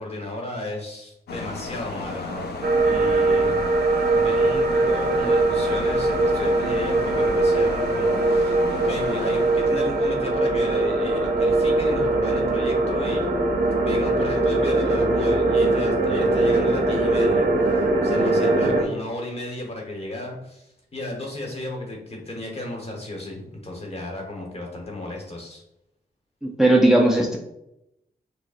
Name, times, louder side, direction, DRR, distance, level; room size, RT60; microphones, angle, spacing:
voice 1, 0.0-13.3 13.8-25.6, left 1 dB, 40° left, 0 dB, 1.1 m, -34 dB
sound 1, 1.3-11.5, left 3 dB, 80° left, 0.5 m, -35 dB
sound 2, 2.6-18.8, right 2 dB, 60° right, 0.7 m, -21 dB
voice 2, 26.4-27.4, right 1 dB, 5° right, 0 dB, 0.5 m, -17 dB
6.2 x 2.1 x 2.5 m, 0.84 s
cardioid pair, 65°, 16 cm